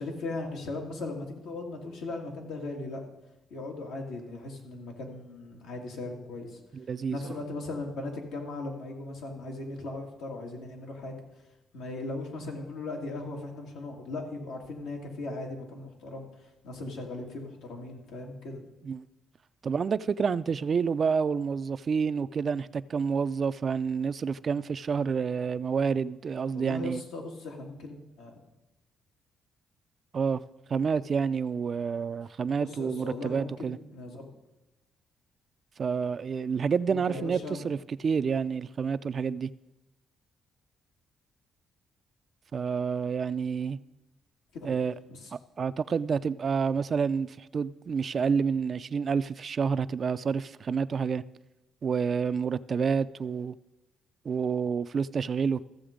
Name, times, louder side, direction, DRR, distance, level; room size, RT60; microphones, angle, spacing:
voice 1, 0.0-3.0 3.5-6.6 7.1-11.2 11.7-18.6 26.5-28.3 32.6-34.3 36.9-37.7 44.5-44.8 45.1-45.3, left 2 dB, 90° left, 2.1 m, -38 dB
voice 2, 6.7-7.4 18.8-19.0 19.6-27.0 30.1-30.4 30.7-33.8 35.8-37.8 38.0-39.5 42.5-43.8 44.6-44.9 45.6-51.2 51.8-53.6 54.2-55.6, right 6 dB, 45° right, 0.4 m, -28 dB
14.5 x 7.0 x 5.1 m
cardioid pair, 90°, 0 cm